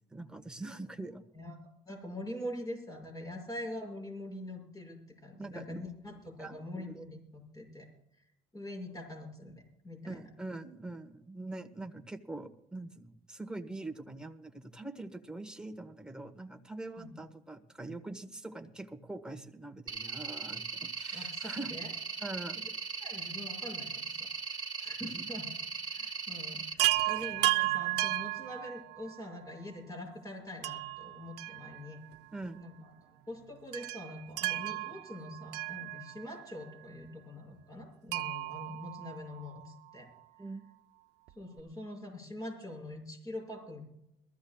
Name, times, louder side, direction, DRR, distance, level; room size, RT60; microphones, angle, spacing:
voice 1, 0.0-1.2 5.4-5.8 6.4-7.0 10.0-21.8 22.2-22.7 25.0-25.3 32.3-32.6 40.4-40.6, right 2 dB, 5° right, 6 dB, 1.5 m, -43 dB
voice 2, 1.9-7.9 8.5-10.2 17.0-17.2 21.1-21.9 23.0-25.5 25.9-32.0 32.5-40.1 41.3-43.8, left 1 dB, 20° left, 2 dB, 6.9 m, -44 dB
sound 1, 19.9-26.7, right 5 dB, 25° right, 2.3 m, -39 dB
Chime, 26.8-29.2 30.6-32.2 32.4-32.5 33.7-36.4 38.1-39.7 41.3-41.4 41.6-41.7, right 19 dB, 85° right, 0.7 m, -33 dB
22.5 x 15.0 x 2.4 m, 0.79 s
cardioid pair, 110°, 17 cm